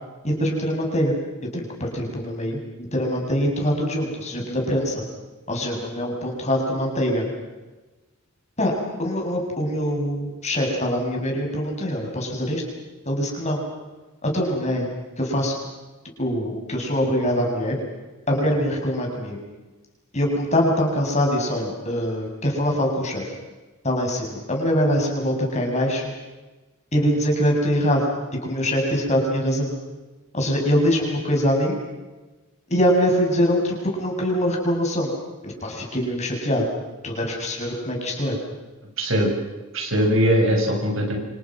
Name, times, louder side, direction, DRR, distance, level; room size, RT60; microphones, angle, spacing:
voice 1, 0.2-1.2 1.5-5.0 5.5-7.3 8.6-12.6 13.1-13.6 14.2-14.9 15.2-15.5 16.2-17.8 18.3-19.4 20.1-23.3 23.8-26.1 26.9-28.1 28.4-29.7 30.3-31.8 32.7-35.1 35.4-36.7 37.0-38.4, equal, 30° left, 1 dB, 7.3 m, -23 dB
voice 2, 39.0-39.3 39.7-41.2, equal, 60° right, 3 dB, 6.5 m, -20 dB
30.0 x 26.5 x 6.2 m, 1.2 s
head